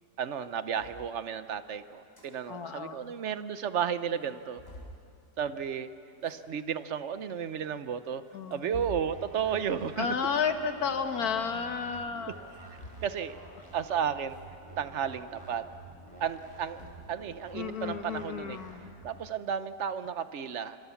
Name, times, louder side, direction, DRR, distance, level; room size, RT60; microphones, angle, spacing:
voice 1, 0.2-4.6 5.4-5.9 6.2-8.2 8.5-10.1 12.3-12.4 13.0-13.4 13.7-14.4 14.8-15.7 16.2-16.8 17.1-18.6 19.0-20.8, right 8 dB, 55° right, 12 dB, 0.9 m, -33 dB
sound 1, 0.8-1.0 1.9-2.3 2.7-2.8 3.0-3.1 3.7-3.8 4.1-5.0 6.1-6.4 7.2-7.3 8.0-9.1 10.3-10.5 12.3-13.3 14.3-14.5 14.8-14.9 16.2-17.2, left 1 dB, 35° left, 5.3 m, -47 dB
voice 2, 2.5-3.0 8.3-8.8 10.0-12.4 17.5-18.8, left 6 dB, 60° left, 7 dB, 1.8 m, -32 dB
sound 2, 9.1-19.1, right 2 dB, 15° right, 5.0 m, -50 dB
26.5 x 25.5 x 7.1 m, 2.5 s
omnidirectional pair, 1.8 m